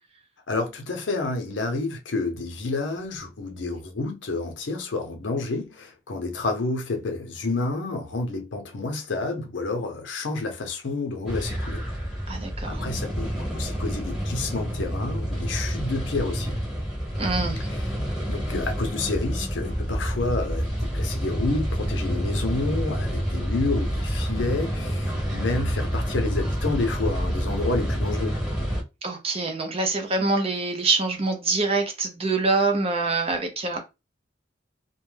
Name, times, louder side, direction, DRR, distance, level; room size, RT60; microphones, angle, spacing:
voice 1, 0.5-11.9 12.7-16.7 17.7-17.8 18.3-28.4, left 3 dB, 85° left, 0.6 m, -29 dB
sound 1, 11.2-28.8, equal, ahead, 1.1 m, -28 dB
voice 2, 12.3-12.9 17.2-17.7 29.0-33.8, right 3 dB, 35° right, 0.6 m, -25 dB
2.2 x 2.1 x 3.2 m
head